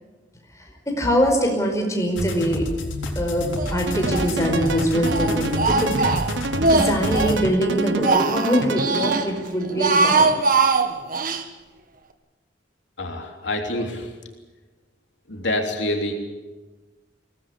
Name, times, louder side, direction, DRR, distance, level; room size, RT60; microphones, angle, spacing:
voice 1, 0.5-2.6 3.1-5.9 6.7-10.3, equal, 15° left, 2 dB, 4.9 m, -23 dB
sound 1, 2.2-7.4, left 1 dB, 85° left, 3.8 m, -29 dB
Speech, 3.6-4.3 4.6-7.4 7.8-9.3 9.6-11.4, right 3 dB, 45° right, 1.6 m, -22 dB
sound 2, 3.9-9.5, right 3 dB, 70° right, 1.1 m, -29 dB
voice 2, 13.0-14.1 15.3-16.1, left 1 dB, 65° left, 2 dB, 3.3 m, -26 dB
23.5 x 18.5 x 8.5 m, 1.2 s
head